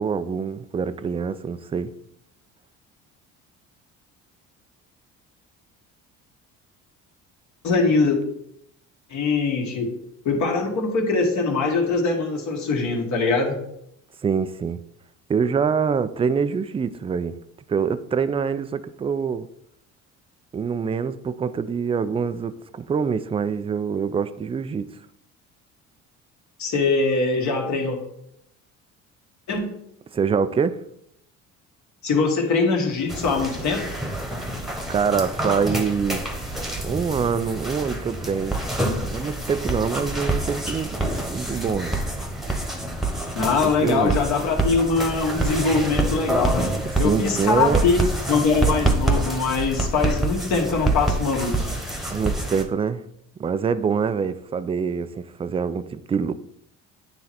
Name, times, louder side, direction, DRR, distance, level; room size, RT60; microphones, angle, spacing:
voice 1, 0.0-1.9 14.2-14.8 15.3-17.3 17.7-19.5 20.5-24.9 30.1-30.8 34.9-38.6 39.1-41.0 41.3-42.0 43.5-44.2 47.0-47.8 52.1-53.0 53.4-56.3, right 6 dB, 20° right, 0.3 m, -25 dB
voice 2, 7.6-8.2 9.1-9.9 10.3-13.6 26.6-28.0 29.5-29.7 32.0-33.9 43.3-46.7 47.0-48.0 48.3-51.7, left 4 dB, 60° left, 1.9 m, -22 dB
sound 1, 33.1-52.6, right 2 dB, ahead, 1.2 m, -26 dB
9.4 x 3.2 x 4.3 m
cardioid pair, 95°, 32 cm